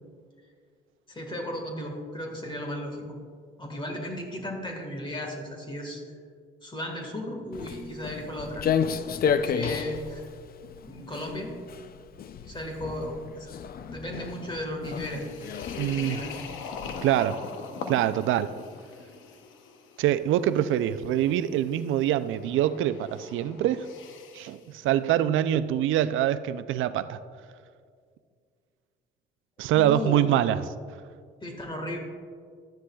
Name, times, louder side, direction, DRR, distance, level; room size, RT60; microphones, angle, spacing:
voice 1, 1.1-3.1 3.6-6.0 6.6-8.6 9.3-10.2 10.8-11.5 12.4-13.5 13.8-15.2 15.9-16.4 29.7-30.3 31.4-32.0, left 1 dB, 25° left, 1.6 m, -35 dB
Walk footsteps, 7.5-17.0, left 7 dB, 50° left, 0.5 m, -32 dB
sound 1, 14.8-24.6, left 5 dB, 90° left, 0.8 m, -43 dB
voice 2, 15.8-16.2 17.0-17.4 17.9-18.5 20.0-23.9 24.3-27.2 29.6-30.6, right 12 dB, 80° right, 0.4 m, -25 dB
13.0 x 9.8 x 2.3 m
cardioid pair, 90°, 20 cm